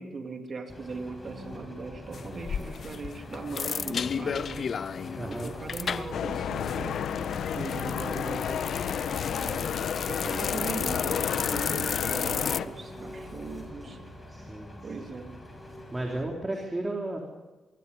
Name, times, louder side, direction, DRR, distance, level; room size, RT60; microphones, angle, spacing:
voice 1, 0.0-4.7 5.3-7.0 7.4-8.7 9.3-9.7 10.1-14.0 14.8-15.4, right 4 dB, 45° right, 3 dB, 3.4 m, -39 dB
Engine, 0.7-16.2, left 1 dB, 15° left, 6.3 m, -44 dB
sound 1, 2.1-12.6, left 6 dB, 50° left, 0.6 m, -34 dB
voice 2, 5.2-5.5 14.3-15.1 15.9-17.2, right 2 dB, 15° right, 1 dB, 3.5 m, -34 dB
sound 2, 6.1-12.6, left 8 dB, 75° left, 1.2 m, -31 dB
24.5 x 23.0 x 5.5 m, 1.2 s
cardioid pair, 105°, 0 cm